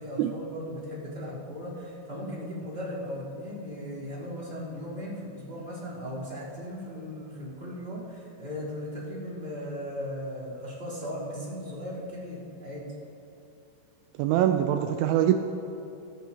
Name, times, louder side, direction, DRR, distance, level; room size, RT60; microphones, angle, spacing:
voice 1, 0.0-12.8, equal, 15° right, -7 dB, 2.9 m, -37 dB
voice 2, 14.2-15.4, right 11 dB, 85° right, 7 dB, 2.7 m, -23 dB
17.5 x 14.5 x 2.9 m, 2.7 s
omnidirectional pair, 5.7 m